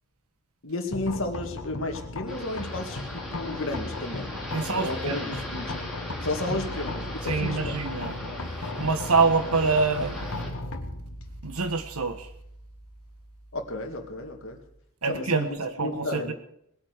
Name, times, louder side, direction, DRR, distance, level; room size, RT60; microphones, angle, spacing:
voice 1, 0.6-4.3 4.6-5.3 5.5-5.7 6.2-7.7 13.5-14.6 15.1-16.3, left 2 dB, 60° left, 2.1 m, -33 dB
sound 1, 0.9-14.8, left 2 dB, 90° left, 1.4 m, -37 dB
sound 2, 2.3-10.5, left 1 dB, ahead, 3.4 m, -39 dB
voice 2, 4.5-5.3 6.5-6.6 7.2-8.1 8.7-10.3 11.4-12.3 15.0-16.3, right 4 dB, 90° right, 1.5 m, -26 dB
19.5 x 8.6 x 6.6 m
head